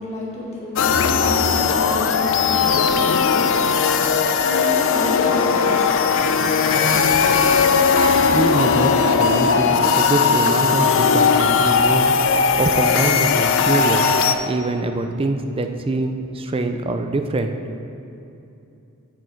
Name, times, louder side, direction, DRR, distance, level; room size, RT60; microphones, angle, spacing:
voice 1, 0.0-8.3, equal, 30° left, -5 dB, 1.8 m, -32 dB
sound 1, 0.8-14.3, left 5 dB, 60° left, 0.4 m, -18 dB
voice 2, 8.3-12.1 12.6-14.1 14.5-17.6, right 2 dB, 25° right, 6 dB, 0.4 m, -24 dB
8.3 x 6.5 x 4.5 m, 2.8 s
head